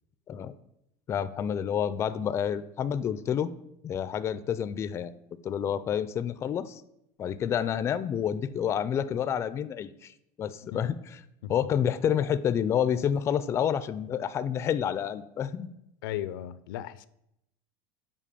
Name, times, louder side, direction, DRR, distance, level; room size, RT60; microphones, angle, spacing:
voice 1, 1.1-3.5 3.8-5.1 5.4-6.8 7.2-10.1 10.4-11.0 11.5-15.7, left 8 dB, 25° left, 0.4 m, -29 dB
voice 2, 16.0-17.1, left 12 dB, 90° left, 0.5 m, -36 dB
7.5 x 5.2 x 6.8 m
supercardioid pair, 145°, 11 cm